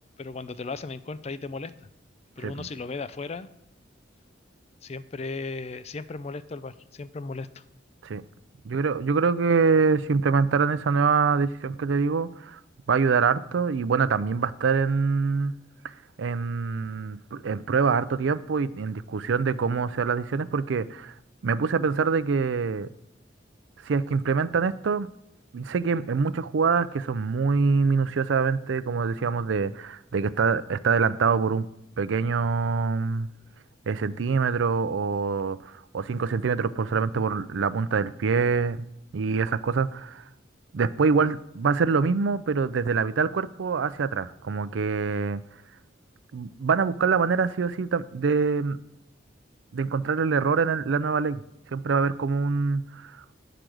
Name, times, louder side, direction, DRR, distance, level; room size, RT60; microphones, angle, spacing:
voice 1, 0.2-1.7 2.4-3.5 4.8-7.6, left 3 dB, 35° left, 0.4 m, -36 dB
voice 2, 8.6-12.6 12.9-15.5 16.2-21.1 21.4-22.9 23.8-25.1 25.5-31.7 32.0-33.3 33.9-38.8 39.1-40.2 40.7-45.4 46.3-48.8 49.7-51.4 51.7-53.2, right 5 dB, 80° right, 0.4 m, -25 dB
10.5 x 5.0 x 6.2 m
head